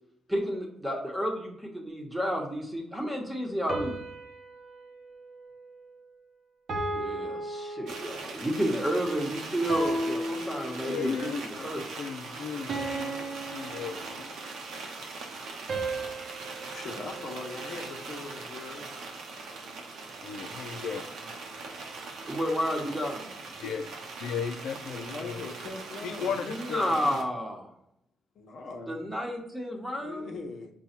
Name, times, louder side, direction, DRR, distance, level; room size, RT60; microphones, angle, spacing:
voice 1, 0.3-4.0 6.9-11.8 22.2-23.3 26.4-27.7 28.9-30.3, equal, 10° right, 1 dB, 1.1 m, -31 dB
sound 1, 3.7-6.2 6.7-8.4 9.7-11.2 12.7-14.6 15.7-18.1, right 2 dB, 55° right, 0.8 m, -36 dB
sound 2, 7.9-27.2, right 3 dB, 90° right, 0.9 m, -41 dB
voice 2, 10.8-14.4 20.2-21.0 23.6-25.5 26.0-27.2, left 6 dB, 90° left, 6 dB, 0.4 m, -36 dB
voice 3, 16.7-18.9 24.9-26.3 28.4-29.0 30.0-30.7, left 3 dB, 60° left, 3 dB, 0.8 m, -41 dB
5.4 x 2.3 x 4.3 m, 0.77 s
cardioid pair, 120°, 0 cm